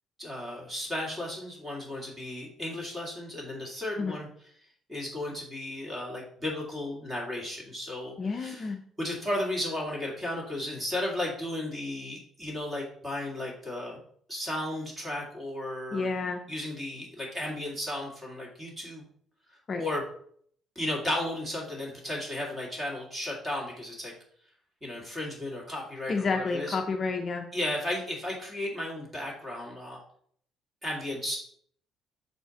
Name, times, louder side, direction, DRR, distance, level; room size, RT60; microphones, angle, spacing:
voice 1, 0.2-4.3 4.9-8.7 9.0-14.0 14.3-16.1 16.5-19.1 19.8-20.0 20.8-24.1 24.8-26.8 27.5-30.0 30.8-31.4, left 1 dB, 15° right, -2 dB, 2.1 m, -34 dB
voice 2, 8.2-8.8 15.9-16.4 19.7-19.8 26.1-27.5, left 4 dB, 30° left, 3 dB, 0.5 m, -30 dB
6.4 x 4.4 x 4.0 m, 0.62 s
cardioid pair, 150°, 0 cm